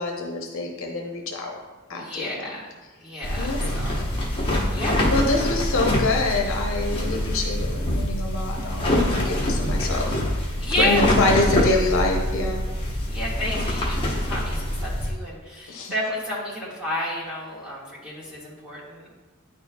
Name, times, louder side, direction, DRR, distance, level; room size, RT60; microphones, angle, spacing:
voice 1, 0.0-1.5 1.9-2.0 3.4-3.6 3.9-4.0 5.1-10.1 10.8-12.6 15.7-15.9, left 2 dB, 65° left, 0 dB, 0.8 m, -25 dB
voice 2, 1.9-2.7 3.0-4.3 4.7-5.1 5.4-5.5 10.6-11.3 13.1-19.1, left 1 dB, 5° right, -8 dB, 1.7 m, -31 dB
sound 1, 3.2-15.1, left 1 dB, 25° left, 1.0 m, -25 dB
9.4 x 4.4 x 2.3 m, 1.2 s
head